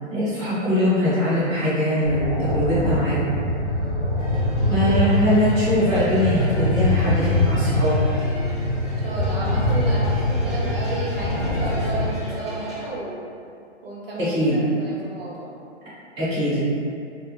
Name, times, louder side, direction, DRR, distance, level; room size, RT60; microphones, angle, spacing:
voice 1, 0.1-3.4 4.7-8.0 14.2-14.6 16.2-16.6, left 1 dB, 20° right, -13 dB, 0.8 m, -22 dB
sound 1, 2.0-12.1, left 1 dB, 25° left, 0.6 m, -23 dB
sound 2, 4.2-12.9, equal, ahead, 0.3 m, -38 dB
voice 2, 4.6-4.9 9.0-13.2 13.8-15.5, right 2 dB, 50° right, -6 dB, 0.8 m, -32 dB
2.4 x 2.1 x 3.1 m, 2.4 s
hypercardioid pair, 180°, 37 cm